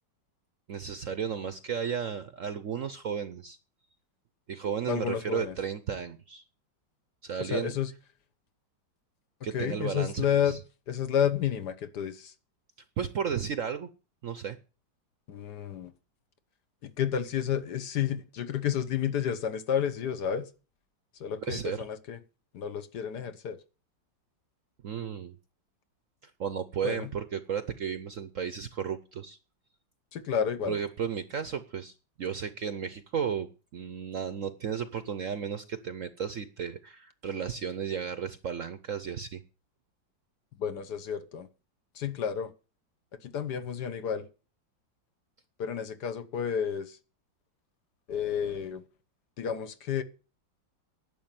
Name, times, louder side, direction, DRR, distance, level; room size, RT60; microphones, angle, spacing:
voice 1, 0.7-3.6 4.5-6.4 7.2-7.7 9.4-10.6 13.0-13.9 14.2-14.6 21.4-21.9 24.8-25.4 26.2-29.4 30.7-39.4, right 7 dB, 60° right, 0.9 m, -34 dB
voice 2, 4.9-5.5 7.4-7.9 9.5-10.5 10.9-12.3 15.3-15.9 16.8-20.5 21.2-22.2 22.5-23.6 26.8-27.1 30.1-30.8 40.6-41.5 42.0-42.5 43.2-44.3 45.6-47.0 48.1-48.8 49.4-50.0, left 8 dB, 65° left, 1.5 m, -31 dB
11.0 x 7.1 x 8.8 m
omnidirectional pair, 2.1 m